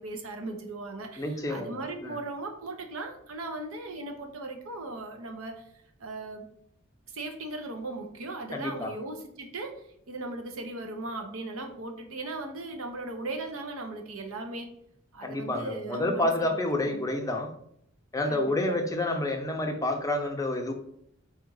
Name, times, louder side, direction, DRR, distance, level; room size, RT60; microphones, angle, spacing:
voice 1, 0.0-5.6 6.0-6.5 7.1-14.7 15.1-17.0 18.3-18.8, right 2 dB, 80° right, 5 dB, 0.8 m, -38 dB
voice 2, 1.2-2.2 8.5-8.9 15.2-17.5 18.1-20.7, left 1 dB, 15° left, 3 dB, 0.5 m, -29 dB
4.2 x 2.5 x 4.7 m, 0.69 s
head